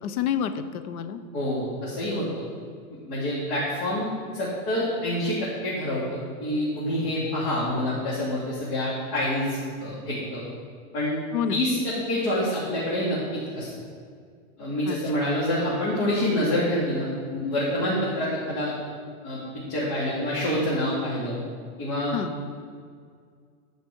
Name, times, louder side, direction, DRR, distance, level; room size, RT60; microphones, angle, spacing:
voice 1, 0.0-1.2 11.3-11.7 14.9-15.3 22.1-22.4, left 8 dB, 70° left, 10 dB, 0.9 m, -29 dB
voice 2, 1.3-2.3 3.1-4.1 4.3-10.4 10.9-11.1 11.5-11.8 12.1-13.2 13.5-13.7 14.6-18.7 19.2-19.4 19.7-21.4 21.8-22.1, left 1 dB, 40° left, -8 dB, 2.8 m, -27 dB
15.0 x 5.1 x 4.5 m, 2.1 s
supercardioid pair, 160°, 45 cm